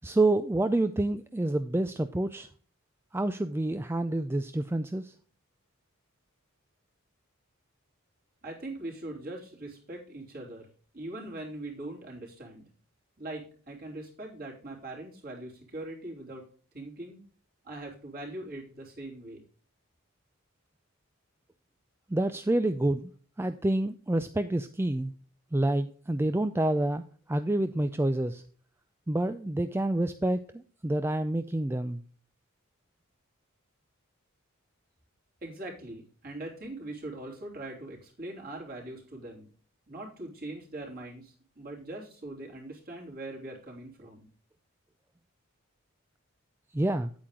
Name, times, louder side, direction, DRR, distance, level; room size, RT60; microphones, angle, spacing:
voice 1, 0.0-2.5 3.1-5.1 22.1-23.1 23.4-25.1 25.5-27.0 27.3-28.4 29.1-32.0 46.7-47.1, right 1 dB, 10° right, 10 dB, 0.3 m, -28 dB
voice 2, 8.4-10.7 10.9-12.6 13.2-16.4 16.7-17.2 17.6-19.4 35.4-39.5 39.9-44.3, right 2 dB, 45° right, -1 dB, 3.5 m, -41 dB
9.2 x 8.7 x 3.7 m, 0.42 s
head